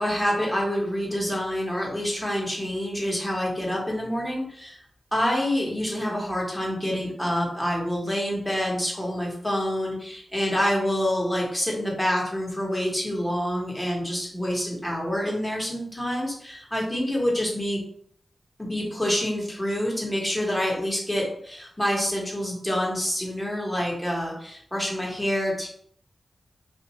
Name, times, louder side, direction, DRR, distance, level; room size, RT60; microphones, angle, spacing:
voice 1, 0.0-4.8 5.1-17.8 18.6-25.7, equal, 10° left, -3 dB, 1.2 m, -27 dB
2.6 x 2.4 x 4.1 m, 0.63 s
wide cardioid pair, 75°, 0 cm